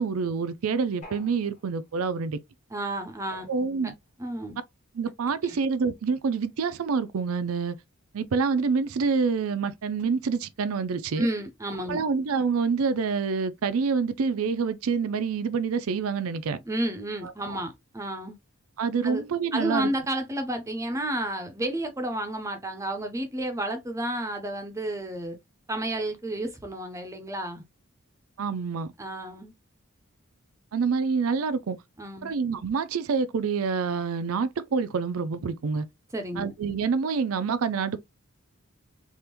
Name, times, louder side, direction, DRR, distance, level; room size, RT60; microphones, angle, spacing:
voice 1, 0.0-2.4 3.5-3.9 5.0-7.8 8.1-11.3 11.9-16.6 17.2-17.6 18.8-19.9 28.4-28.9 30.7-31.8 32.2-35.9 36.4-38.0, right 5 dB, 80° right, 0.4 m, -27 dB
sound 1, 1.0-2.0 3.3-4.1, left 2 dB, 35° left, 1.4 m, -50 dB
voice 2, 2.7-3.5 4.2-4.6 5.4-5.6 11.2-12.0 16.7-18.4 19.0-19.2 19.5-25.4 25.7-27.6 29.0-29.5 32.0-32.4 36.1-36.5, right 1 dB, 15° right, 0.5 m, -31 dB
3.5 x 2.5 x 2.9 m
head